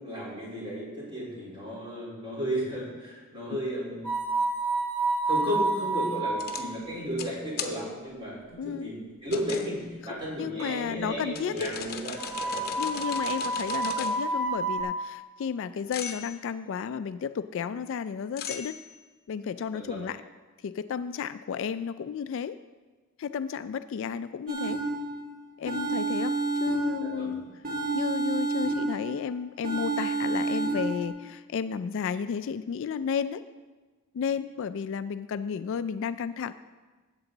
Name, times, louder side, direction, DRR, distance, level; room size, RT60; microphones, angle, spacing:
voice 1, 0.0-4.1 5.3-12.2 12.4-12.7 19.7-20.0 27.0-27.4, equal, 25° right, -6 dB, 3.8 m, -34 dB
sound 1, 4.0-6.7 10.6-10.7 12.2-14.8, right 2 dB, 90° right, 1.8 m, -29 dB
sound 2, 6.4-6.6 7.2-7.3 7.6-7.7 9.3-9.7 11.4-14.2 15.9-16.4 18.4-19.0, left 7 dB, 45° left, 0.8 m, -37 dB
voice 2, 8.6-8.9 10.1-11.7 12.8-18.8 19.3-20.2 20.6-22.6 23.2-24.8 25.6-27.4 27.9-33.4 34.1-36.5, left 7 dB, 60° left, 12 dB, 0.3 m, -32 dB
sound 3, 24.5-25.3 25.7-27.3 27.6-29.2 29.6-31.1, right 3 dB, 40° right, 1.7 m, -29 dB
13.5 x 8.1 x 3.9 m, 1.3 s
head